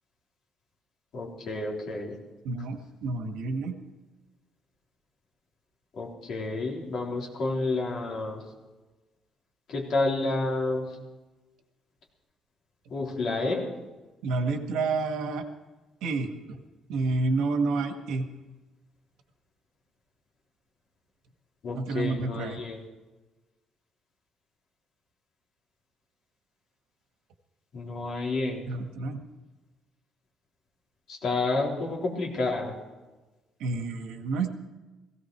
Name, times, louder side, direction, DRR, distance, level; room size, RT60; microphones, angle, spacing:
voice 1, 1.1-2.1 6.0-8.4 9.7-10.9 12.9-13.7 21.6-22.8 27.7-28.6 31.1-32.7, left 2 dB, 45° left, -2 dB, 3.6 m, -30 dB
voice 2, 2.4-3.8 14.2-15.4 16.0-16.6 16.9-18.3 21.7-22.6 28.7-29.2 33.6-34.5, right 3 dB, 75° right, 5 dB, 1.8 m, -29 dB
17.5 x 17.0 x 4.7 m, 1.1 s
cardioid pair, 175°, 0 cm